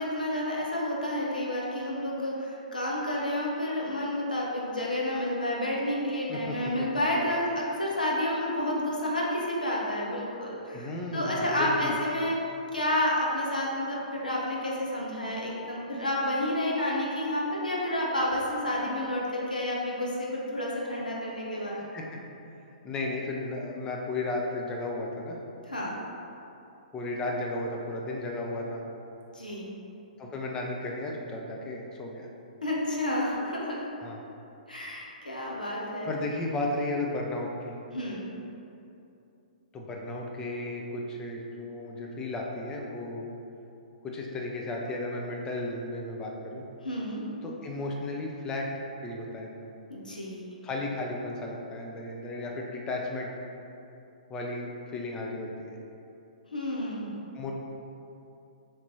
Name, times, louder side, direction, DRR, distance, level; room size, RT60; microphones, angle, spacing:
voice 1, 0.0-12.4 12.7-21.8 25.7-25.9 29.3-29.7 32.6-33.8 34.7-36.1 37.9-38.2 46.8-47.2 49.9-50.4 56.5-57.1, left 1 dB, 80° left, -4 dB, 0.7 m, -30 dB
voice 2, 10.7-12.0 21.5-22.2 22.8-25.4 26.9-28.8 30.2-32.3 34.0-34.2 36.0-37.7 39.7-43.3 44.0-46.6 47.4-48.7 49.0-49.7 50.6-53.3 54.3-55.8 57.3-57.5, left 2 dB, 15° left, -1 dB, 0.4 m, -34 dB
4.3 x 3.1 x 2.8 m, 2.7 s
figure-of-eight pair, 115°, 4 cm